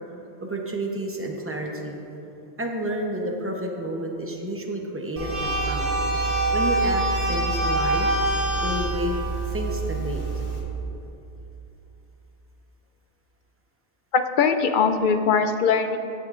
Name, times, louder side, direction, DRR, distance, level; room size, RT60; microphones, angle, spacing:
voice 1, 0.4-2.0 2.6-6.0 6.5-8.1 8.6-9.1 9.5-10.2, right 1 dB, 15° right, 0 dB, 0.8 m, -30 dB
sound 1, 5.2-10.6, right 2 dB, 60° right, 1.5 m, -25 dB
voice 2, 14.1-16.0, left 6 dB, 60° left, 8 dB, 0.6 m, -21 dB
17.5 x 6.6 x 2.5 m, 3.0 s
omnidirectional pair, 1.0 m